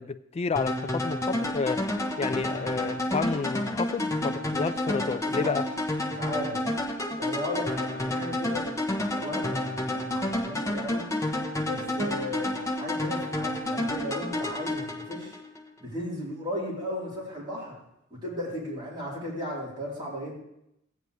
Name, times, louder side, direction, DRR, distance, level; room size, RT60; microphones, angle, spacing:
voice 1, 0.0-1.8 2.2-5.6, left 4 dB, 30° left, 12 dB, 0.3 m, -30 dB
sound 1, 0.6-15.6, left 1 dB, 15° left, 1.0 m, -30 dB
voice 2, 4.8-5.6 6.1-6.7 7.2-11.0 11.6-15.4 15.8-17.8 18.1-20.3, left 1 dB, 25° right, -7 dB, 3.6 m, -36 dB
16.0 x 9.4 x 3.2 m, 0.82 s
head